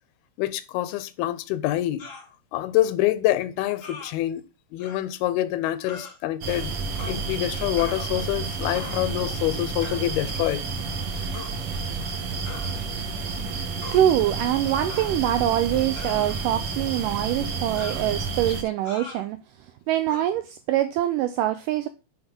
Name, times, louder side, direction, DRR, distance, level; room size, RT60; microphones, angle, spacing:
voice 1, 0.4-2.0 2.5-4.4 4.7-10.6, left 14 dB, 85° left, 2.5 m, -26 dB
sound 1, 2.0-2.3 3.8-4.1 4.8-5.0 5.8-6.2 7.0-7.2 7.8-8.4 8.7-9.2 9.8-10.1 11.3-11.5 12.5-12.7 13.8-14.1 14.9-15.4 15.9-16.6 17.7-18.1 18.8-19.2 20.1-20.2, left 3 dB, 35° left, 1.2 m, -41 dB
sound 2, 6.4-18.6, right 4 dB, 60° right, 1.5 m, -30 dB
voice 2, 13.9-21.9, right 12 dB, 85° right, 1.9 m, -24 dB
7.9 x 3.7 x 5.2 m
omnidirectional pair, 4.3 m